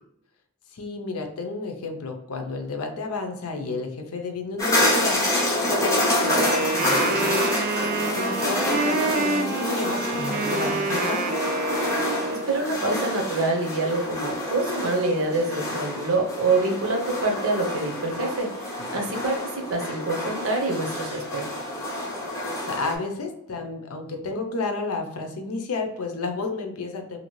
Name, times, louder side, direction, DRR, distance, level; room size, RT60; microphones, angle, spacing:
voice 1, 0.7-7.6 8.1-11.3 18.9-19.1 22.6-27.2, left 3 dB, 80° left, 4 dB, 0.6 m, -31 dB
sound 1, 4.6-23.0, left 1 dB, 15° left, 0.6 m, -27 dB
Wind instrument woodwind instrument, 6.2-12.5, right 3 dB, 40° right, 0.4 m, -27 dB
voice 2, 12.3-21.4, right 2 dB, 65° right, 2 dB, 0.7 m, -26 dB
2.8 x 2.6 x 3.1 m, 0.78 s
head